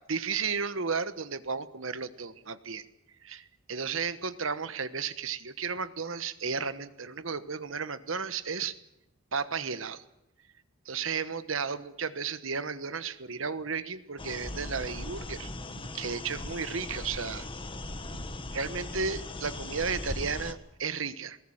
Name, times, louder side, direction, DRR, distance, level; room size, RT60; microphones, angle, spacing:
voice 1, 0.1-2.9 3.2-8.8 9.3-10.0 10.8-17.5 18.1-18.2 18.5-21.4, right 5 dB, 65° right, 13 dB, 1.3 m, -34 dB
sound 1, 14.2-20.5, left 2 dB, 25° left, 1.4 m, -39 dB
21.0 x 18.5 x 8.9 m, 0.85 s
head